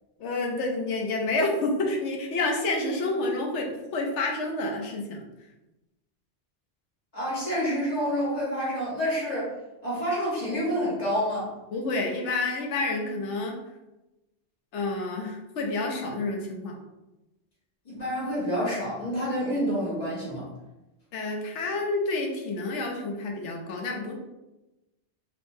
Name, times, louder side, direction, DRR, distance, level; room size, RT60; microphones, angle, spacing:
voice 1, 0.2-5.2 11.7-13.6 14.7-16.7 21.1-24.1, left 2 dB, 85° left, 1 dB, 1.0 m, -29 dB
voice 2, 7.1-9.5 9.8-11.5 17.8-20.5, equal, 35° left, -7 dB, 1.4 m, -28 dB
3.4 x 2.9 x 2.6 m, 1.0 s
omnidirectional pair, 1.2 m